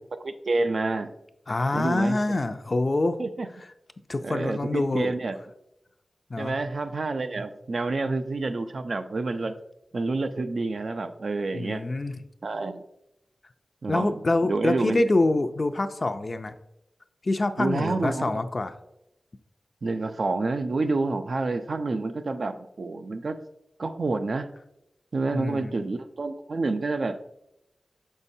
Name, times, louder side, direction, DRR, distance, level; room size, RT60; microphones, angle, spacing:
voice 1, 0.2-1.1 1.7-2.2 3.2-3.5 4.2-5.4 6.4-9.5 9.9-11.8 12.4-12.8 13.8-14.1 14.4-15.0 17.6-18.4 19.8-23.4 23.8-24.5 25.1-27.4, right 3 dB, 65° right, 9 dB, 0.4 m, -28 dB
voice 2, 1.5-3.2 4.1-5.1 6.3-6.6 11.5-12.2 13.9-16.5 17.2-18.7 25.3-25.7, left 2 dB, 40° left, 9 dB, 0.4 m, -26 dB
6.4 x 5.5 x 2.7 m, 0.85 s
wide cardioid pair, 95°, 0 cm